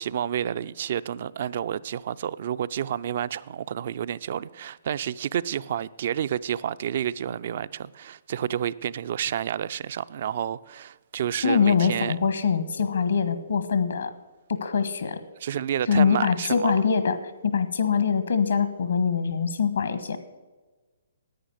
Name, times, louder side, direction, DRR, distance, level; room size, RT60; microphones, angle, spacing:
voice 1, 0.0-12.2 15.4-16.8, right 9 dB, 50° right, 0.4 m, -30 dB
voice 2, 11.4-14.1 14.5-15.2 15.9-20.2, left 6 dB, 70° left, 1.3 m, -23 dB
10.0 x 9.4 x 8.0 m
figure-of-eight pair, 130°, 0 cm